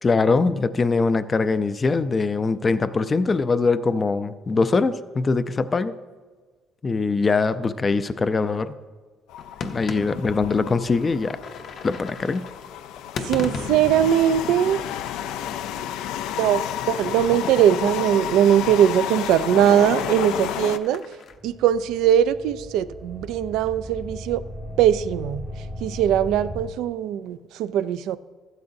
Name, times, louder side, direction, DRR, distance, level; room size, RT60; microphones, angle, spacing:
voice 1, 0.0-5.9 6.8-8.8 9.6-11.4 11.8-12.4, left 4 dB, 25° left, 13 dB, 0.4 m, -22 dB
sound 1, 9.3-20.8, left 10 dB, 85° left, 0.4 m, -31 dB
sound 2, 9.4-15.8 16.1-21.3, left 4 dB, 50° left, 0.8 m, -38 dB
voice 2, 13.2-14.8 16.4-21.0 21.4-24.4 24.8-25.4 25.8-28.2, right 10 dB, 80° right, 14 dB, 0.4 m, -20 dB
sound 3, 21.3-26.7, equal, 10° right, 0.7 m, -37 dB
14.5 x 12.0 x 2.7 m, 1.4 s
cardioid pair, 120°, 0 cm